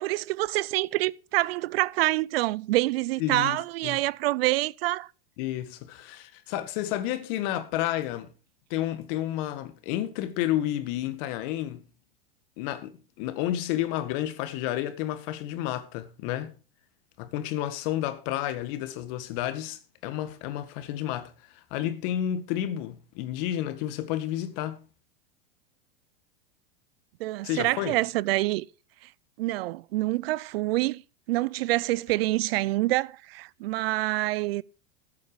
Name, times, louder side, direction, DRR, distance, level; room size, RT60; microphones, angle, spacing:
voice 1, 0.0-5.1 27.2-28.7 29.4-31.0 31.3-34.6, right 18 dB, 70° right, 0.6 m, -26 dB
voice 2, 3.2-4.0 5.4-8.3 8.7-11.8 12.6-16.5 17.2-24.8 27.4-28.0, left 12 dB, 55° left, 1.9 m, -31 dB
14.0 x 8.3 x 4.8 m
hypercardioid pair, 115°, 31 cm